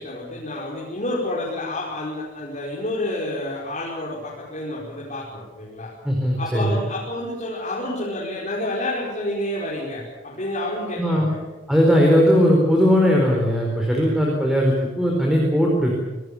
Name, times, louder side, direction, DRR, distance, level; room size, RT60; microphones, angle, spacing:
voice 1, 0.0-5.9 6.4-11.4 14.0-14.2, left 1 dB, 40° left, -4 dB, 5.1 m, -29 dB
voice 2, 6.0-6.8 11.0-11.3 11.7-16.0, equal, ahead, -1 dB, 4.7 m, -18 dB
27.5 x 19.0 x 7.3 m, 1.2 s
head